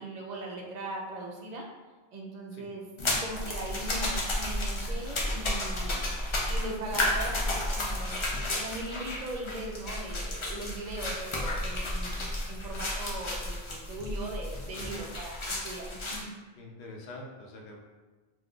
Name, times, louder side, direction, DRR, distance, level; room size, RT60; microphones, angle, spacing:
voice 1, 0.0-1.7 2.1-2.9 3.2-6.0 6.5-8.2 8.5-16.2, right 2 dB, 55° right, -1 dB, 0.5 m, -39 dB
sound 1, 3.0-16.2, left 1 dB, 45° left, 0.4 m, -32 dB
voice 2, 16.6-17.8, left 2 dB, 85° left, 0 dB, 0.8 m, -45 dB
2.5 x 2.4 x 3.5 m, 1.3 s
omnidirectional pair, 1.1 m